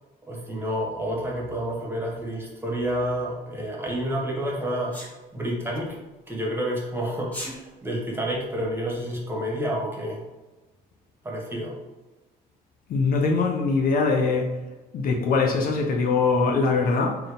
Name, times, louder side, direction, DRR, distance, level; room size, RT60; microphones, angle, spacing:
voice 1, 0.3-5.0 5.3-6.0 6.3-10.2 11.2-11.8, equal, 15° right, 1.8 m, -29 dB
Sneeze, 4.9-5.1 7.2-7.6, left 1 dB, 10° left, 1.6 m, -35 dB
voice 2, 12.9-14.6 14.9-17.2, left 4 dB, 60° left, 0.9 m, -22 dB
4.7 x 3.9 x 5.2 m
cardioid pair, 110°, 17 cm